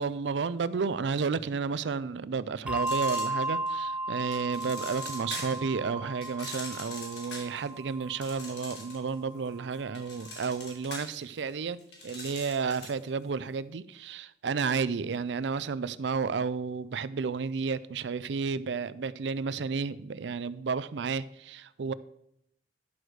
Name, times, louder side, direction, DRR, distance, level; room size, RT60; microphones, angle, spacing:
voice 1, 0.0-21.9, right 5 dB, 85° right, 0.5 m, -32 dB
Bell, 2.7-9.5, right 2 dB, 5° right, 0.3 m, -35 dB
sound 1, 2.8-3.8 4.3-5.7 6.2-9.1 9.5-13.1, left 2 dB, 75° left, 2.8 m, -42 dB
11.0 x 6.4 x 4.7 m
head